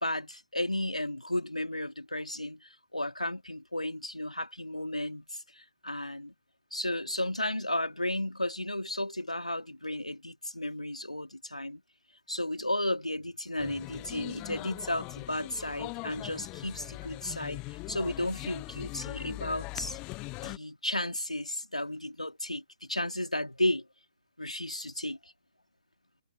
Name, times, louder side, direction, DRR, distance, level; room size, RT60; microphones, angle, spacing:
voice 1, 0.0-6.3 6.7-11.8 12.3-20.0 20.4-23.9 24.4-25.2, left 1 dB, 85° left, 3.1 m, -34 dB
sound 1, 13.6-20.6, left 25 dB, 20° left, 0.9 m, -41 dB
figure-of-eight pair, 130°, 4 cm